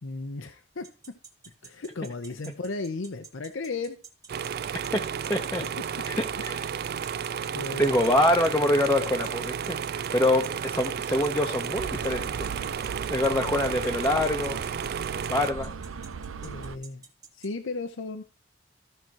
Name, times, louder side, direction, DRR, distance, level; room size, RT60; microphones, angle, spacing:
voice 1, 0.0-1.1 1.6-4.0 6.8-6.9 7.5-8.0 16.4-17.0 17.3-18.2, left 3 dB, 75° left, 8 dB, 0.7 m, -35 dB
sound 1, 0.8-17.5, right 6 dB, 20° right, 1.5 m, -47 dB
sound 2, 4.3-15.5, right 7 dB, 50° right, 0.3 m, -32 dB
voice 2, 5.3-5.6 6.1-6.2 6.4-6.6 7.8-12.5 13.1-14.6 15.3-15.7, left 1 dB, 10° left, 2 dB, 0.8 m, -25 dB
sound 3, 11.8-16.8, right 5 dB, 90° right, 0.6 m, -38 dB
14.5 x 5.9 x 2.9 m, 0.36 s
head